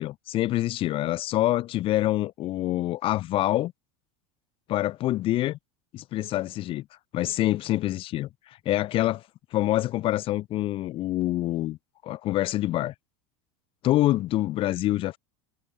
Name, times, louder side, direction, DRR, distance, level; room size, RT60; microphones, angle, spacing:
voice 1, 0.0-3.7 4.7-5.6 5.9-6.8 7.1-9.2 9.5-11.8 12.0-12.9 13.8-15.2, left 15 dB, 40° left, 1.2 m, -26 dB
supercardioid pair, 140°, 14 cm